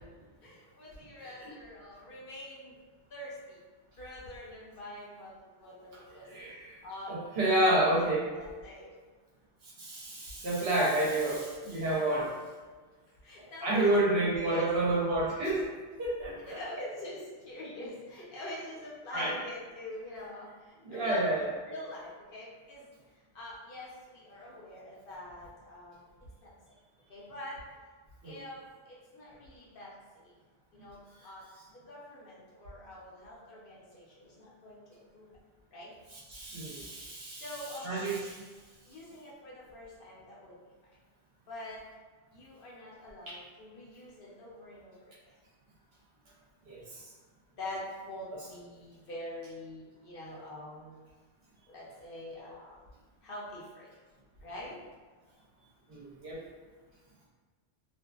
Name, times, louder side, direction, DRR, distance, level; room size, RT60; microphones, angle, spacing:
voice 1, 0.4-2.7 3.1-3.6 4.0-5.3 5.6-6.3 6.8-7.8 8.4-8.9 13.2-14.0 14.3-14.7 16.5-20.5 20.9-22.9 23.3-26.0 26.4-26.5 27.1-27.6 28.2-30.3 30.7-31.0 31.2-31.4 31.7-35.3 35.7-35.9 37.3-38.1 38.9-40.5 41.5-41.8 42.3-44.9 47.6-51.0 51.7-52.7 53.2-53.9 54.4-54.7, left 1 dB, 60° left, -6 dB, 0.8 m, -44 dB
voice 2, 6.3-6.8 7.1-8.3 9.8-12.3 13.6-15.6 16.0-16.6 19.1-19.4 20.8-21.6 28.2-28.4 36.1-37.4 37.8-38.4 46.7-47.0 55.9-56.4, right 1 dB, 70° right, -6 dB, 1.0 m, -29 dB
2.5 x 2.3 x 2.2 m, 1.4 s
omnidirectional pair, 1.1 m